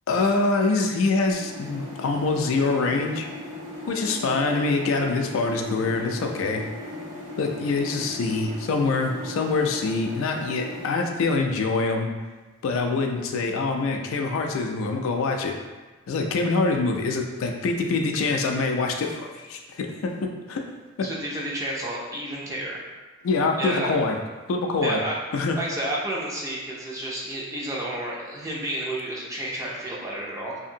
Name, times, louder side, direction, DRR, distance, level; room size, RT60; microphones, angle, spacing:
voice 1, 0.1-3.3 3.9-6.6 7.4-12.1 12.6-15.6 16.1-20.7 21.0-21.1 23.2-24.2 24.5-25.0 25.3-25.6, left 3 dB, 70° left, 3 dB, 0.3 m, -25 dB
sound 1, 1.3-10.9, left 1 dB, 60° right, 1.0 m, -38 dB
voice 2, 21.0-22.8 23.6-23.9 24.8-25.2 25.6-30.6, right 1 dB, 15° right, -4 dB, 0.4 m, -31 dB
2.7 x 2.5 x 2.7 m, 1.3 s
head